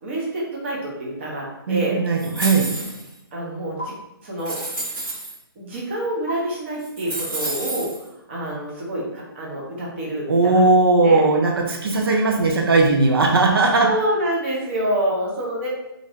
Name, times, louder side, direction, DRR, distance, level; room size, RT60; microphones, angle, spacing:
voice 1, 0.0-2.0 3.3-3.9 4.2-4.6 5.6-7.9 8.3-10.6 11.0-11.2 13.8-15.7, right 1 dB, 30° right, -3 dB, 0.7 m, -27 dB
voice 2, 1.7-2.7 10.3-13.9, right 3 dB, 70° right, 0 dB, 0.6 m, -18 dB
sound 1, 2.2-3.1 3.8-3.9 4.4-5.3 6.3-6.4 6.8-8.0, right 2 dB, 15° right, 1.4 m, -29 dB
2.9 x 2.5 x 2.8 m, 0.89 s
hypercardioid pair, 165°, 13 cm